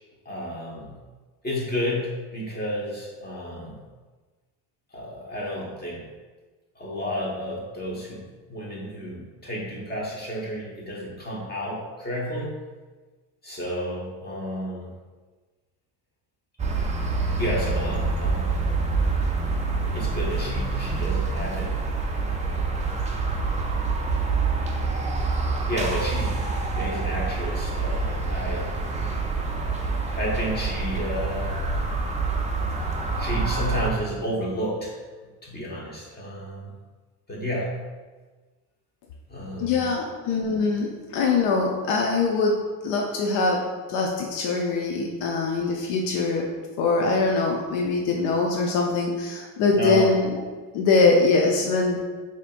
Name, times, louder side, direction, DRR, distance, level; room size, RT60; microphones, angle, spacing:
voice 1, 0.2-1.0 1.4-3.8 4.9-6.0 6.7-12.6 13.4-14.9 17.3-18.7 19.9-21.7 22.2-22.6 25.0-25.3 25.7-28.7 29.7-31.5 33.2-34.9 35.4-36.7 37.3-37.8 39.3-39.9 49.7-50.1, equal, 20° left, -4 dB, 1.3 m, -31 dB
sound 1, 16.6-33.9, right 3 dB, 15° right, 0.3 m, -26 dB
voice 2, 39.6-46.5 46.8-50.4 50.7-52.0, left 3 dB, 75° left, 0 dB, 0.7 m, -23 dB
4.9 x 2.8 x 2.5 m, 1.3 s
supercardioid pair, 95°, 49 cm